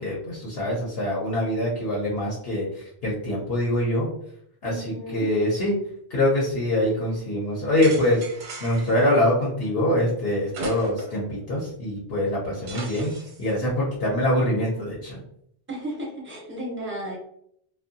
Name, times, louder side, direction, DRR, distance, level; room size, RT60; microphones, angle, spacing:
voice 1, 0.0-4.1 4.6-5.7 6.1-8.2 8.6-13.1 13.4-15.2, left 1 dB, 60° left, -5 dB, 0.9 m, -24 dB
voice 2, 4.6-5.3 15.7-17.2, right 1 dB, 15° right, -3 dB, 0.6 m, -34 dB
sound 1, 7.8-9.0 10.5-11.2 11.6-11.7 12.7-13.5, right 3 dB, 75° right, 1.0 m, -37 dB
2.6 x 2.4 x 2.6 m, 0.69 s
omnidirectional pair, 1.2 m